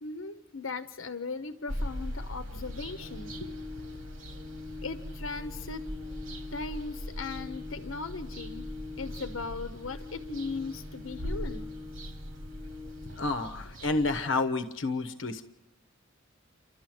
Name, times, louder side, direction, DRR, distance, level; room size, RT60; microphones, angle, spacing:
voice 1, 0.0-3.3 4.8-5.9 6.5-8.7 9.0-11.7, left 4 dB, 85° left, 10 dB, 1.0 m, -38 dB
sound 1, 1.7-14.3, equal, 85° right, 2.7 m, -41 dB
Organ, 2.6-13.6, left 3 dB, 30° right, 1.8 m, -45 dB
voice 2, 13.2-15.5, left 3 dB, 70° left, 10 dB, 1.1 m, -30 dB
29.5 x 12.5 x 7.7 m, 0.96 s
head